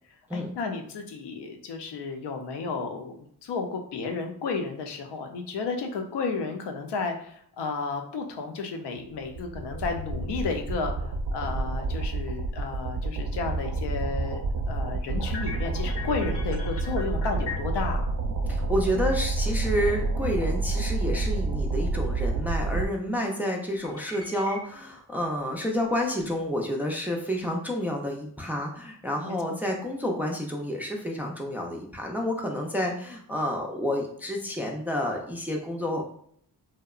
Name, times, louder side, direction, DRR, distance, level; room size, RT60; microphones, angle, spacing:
voice 1, 0.3-18.1 29.2-29.6, left 4 dB, 80° left, 4 dB, 0.5 m, -33 dB
sound 1, 9.1-22.9, right 3 dB, 60° right, 0.6 m, -29 dB
sound 2, 15.2-17.9 19.8-19.9 20.2-20.6 23.8-25.0 25.4-25.5 26.1-26.5, left 5 dB, 35° left, 0.7 m, -40 dB
voice 2, 18.5-36.2, equal, 5° right, 0 dB, 0.3 m, -29 dB
2.7 x 2.1 x 2.3 m, 0.63 s
cardioid pair, 80°, 40 cm